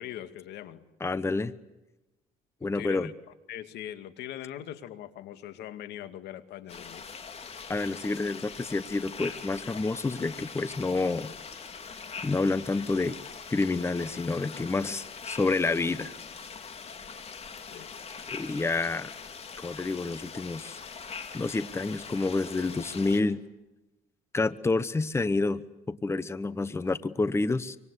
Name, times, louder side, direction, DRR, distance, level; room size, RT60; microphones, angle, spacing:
voice 1, 0.0-0.8 2.6-3.1 3.5-7.1 17.7-17.9, left 11 dB, 80° left, 10 dB, 2.3 m, -41 dB
voice 2, 1.0-1.5 2.6-3.1 7.7-11.3 12.2-13.2 13.5-16.1 18.3-19.1 19.6-20.8 21.3-23.4 24.3-27.8, left 3 dB, 15° left, 14 dB, 1.0 m, -29 dB
sound 1, 6.7-23.2, left 5 dB, 40° left, 3.7 m, -42 dB
25.5 x 25.5 x 8.3 m, 0.99 s
cardioid pair, 110°, 17 cm